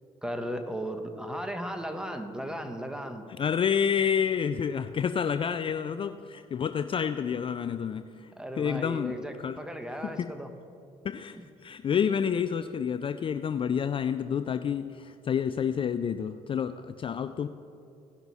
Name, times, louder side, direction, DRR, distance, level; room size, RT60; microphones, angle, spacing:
voice 1, 0.2-3.3 8.4-10.5, equal, 5° right, 6 dB, 1.1 m, -36 dB
voice 2, 3.4-8.3 8.6-9.1 9.4-9.6 10.2-10.3 11.0-11.4 11.6-17.5, left 7 dB, 40° left, 11 dB, 0.4 m, -29 dB
17.0 x 5.8 x 4.1 m, 2.7 s
supercardioid pair, 75°, 14 cm